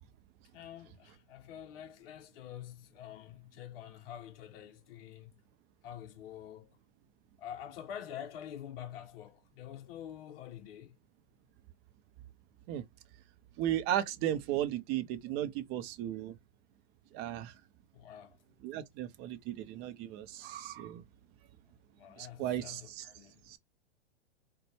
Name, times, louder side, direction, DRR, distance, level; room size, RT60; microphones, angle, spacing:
voice 1, 0.5-5.3 5.8-6.8 7.4-10.9 17.9-18.4 22.0-23.6, left 10 dB, 55° left, 0.6 m, -47 dB
voice 2, 13.6-16.3 17.1-17.5 18.6-21.0 22.2-23.1 23.5-23.6, right 12 dB, 30° right, 0.5 m, -35 dB
3.9 x 2.2 x 3.2 m
hypercardioid pair, 115°, 34 cm